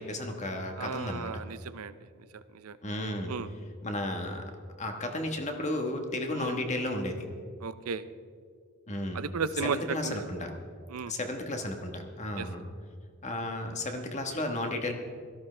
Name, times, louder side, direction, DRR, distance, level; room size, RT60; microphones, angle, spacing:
voice 1, 0.0-1.3 2.8-3.3 3.8-4.4 4.8-7.2 8.9-9.2 9.6-10.5 11.1-12.6 13.2-14.9, left 1 dB, 35° left, 4 dB, 1.3 m, -33 dB
voice 2, 0.8-2.0 2.5-2.8 3.3-3.5 6.3-6.6 7.6-8.0 9.1-10.3 10.9-11.1 12.4-12.5, right 5 dB, 85° right, 13 dB, 0.5 m, -34 dB
17.0 x 13.5 x 3.3 m, 2.1 s
head